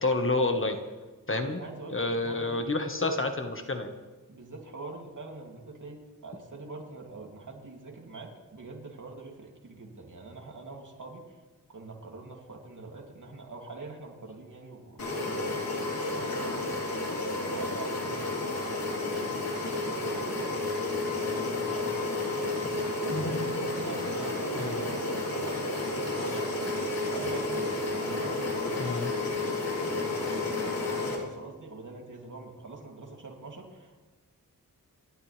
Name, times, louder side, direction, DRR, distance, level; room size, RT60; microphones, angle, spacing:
voice 1, 0.0-0.8 1.3-1.6 1.9-3.9 24.6-24.8 28.8-29.1, left 2 dB, 35° left, 5 dB, 1.5 m, -29 dB
voice 2, 1.4-2.7 3.1-3.2 4.3-11.4 11.7-22.6 23.1-26.5 27.0-29.0 29.3-34.0, right 3 dB, 60° right, 0 dB, 2.9 m, -44 dB
sound 1, 15.0-31.2, left 2 dB, 80° left, 3.9 m, -31 dB
28.0 x 12.5 x 3.5 m, 1.3 s
wide cardioid pair, 120°, 35 cm